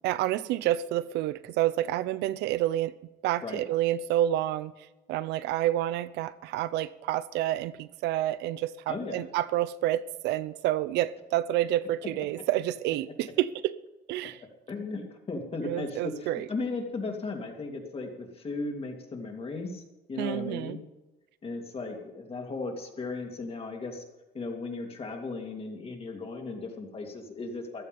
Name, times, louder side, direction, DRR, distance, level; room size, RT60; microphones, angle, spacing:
voice 1, 0.0-2.9 3.2-4.7 5.1-13.7 14.1-14.4 15.6-16.5 20.2-20.8, right 13 dB, 85° right, 0.7 m, -29 dB
voice 2, 8.9-9.2 14.7-19.8 20.1-20.8 21.4-24.0 24.3-27.8, left 3 dB, 35° left, 3.0 m, -36 dB
15.0 x 11.5 x 5.5 m
cardioid pair, 110°, 17 cm